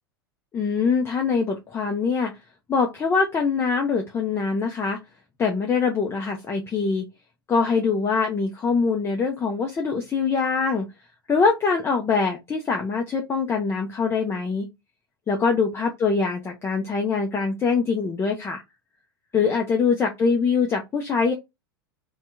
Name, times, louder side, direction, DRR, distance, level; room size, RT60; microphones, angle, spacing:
voice 1, 0.5-2.3 2.7-5.0 5.4-7.0 7.5-10.9 11.3-14.7 15.3-18.6 19.3-21.3, left 5 dB, 20° left, 2 dB, 0.6 m, -23 dB
2.8 x 2.3 x 3.3 m, 0.20 s
figure-of-eight pair, 85°, 12 cm